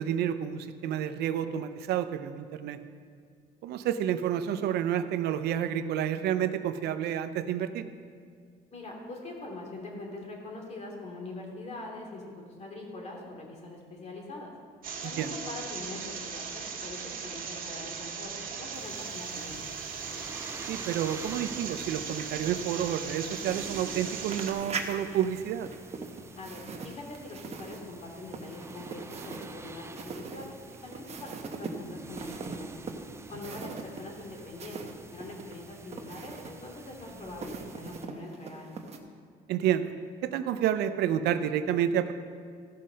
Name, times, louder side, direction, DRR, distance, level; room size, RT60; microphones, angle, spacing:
voice 1, 0.0-2.8 3.6-7.8 15.0-15.3 20.7-25.7 39.5-39.9 40.2-42.1, right 10 dB, 75° right, 10 dB, 0.6 m, -29 dB
voice 2, 8.7-12.2 12.6-14.5 15.0-19.6 26.3-31.3 31.6-32.7 33.3-38.7, left 2 dB, 40° left, 0 dB, 2.8 m, -43 dB
sound 1, 14.8-24.5, right 6 dB, 55° right, 1.8 m, -38 dB
sound 2, 18.7-38.0, right 3 dB, 15° right, 0.5 m, -48 dB
sound 3, 24.3-34.9 35.2-39.0, right 4 dB, 40° right, 1.2 m, -41 dB
15.0 x 5.6 x 6.3 m, 2.1 s
cardioid pair, 110°, 17 cm